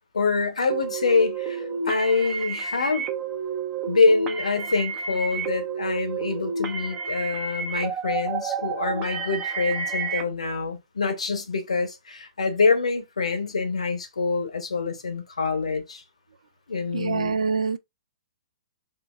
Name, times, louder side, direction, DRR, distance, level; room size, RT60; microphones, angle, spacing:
voice 1, 0.1-3.1 3.9-16.0 16.7-17.3, left 4 dB, 85° left, 0.8 m, -25 dB
sound 1, 0.7-10.2, right 5 dB, 25° right, 0.5 m, -30 dB
voice 2, 16.9-17.8, right 5 dB, 80° right, 0.3 m, -25 dB
3.7 x 2.0 x 2.5 m
hypercardioid pair, 135°, 3 cm